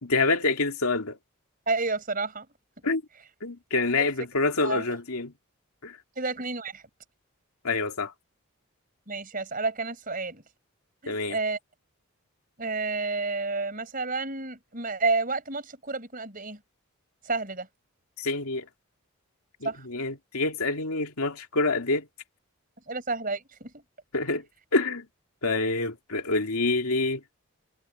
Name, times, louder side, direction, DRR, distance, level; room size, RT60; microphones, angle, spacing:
voice 1, 0.0-1.2 2.8-3.0 3.4-5.3 5.8-6.0 7.6-8.1 11.1-11.4 18.2-18.7 19.6-22.1 24.1-24.4 24.7-25.1 25.4-27.2, left 3 dB, 80° left, 2.6 m, -27 dB
voice 2, 1.7-2.5 4.6-4.8 6.2-6.8 9.1-10.4 11.0-11.6 12.6-16.6 17.2-17.7 19.6-19.9 22.9-23.8, right 3 dB, 40° right, 5.4 m, -30 dB
head